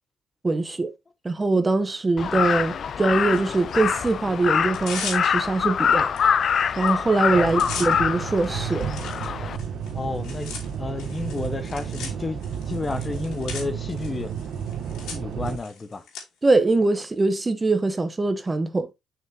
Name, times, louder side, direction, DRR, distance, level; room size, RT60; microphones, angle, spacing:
voice 1, 0.4-0.9 1.2-6.1 6.8-8.9 16.4-18.9, right 3 dB, 25° right, 1.0 m, -22 dB
Crow, 2.2-9.6, left 7 dB, 55° left, 0.5 m, -24 dB
Tearing, 3.3-4.1 4.6-5.7 6.2-6.3 6.6-6.9 7.2-16.2, left 6 dB, 85° left, 3.0 m, -39 dB
sound 1, 7.3-15.6, right 8 dB, 70° right, 1.0 m, -32 dB
voice 2, 9.9-14.3 15.1-16.0, left 3 dB, 30° left, 0.8 m, -31 dB
7.2 x 6.0 x 2.8 m
cardioid pair, 90°, 0 cm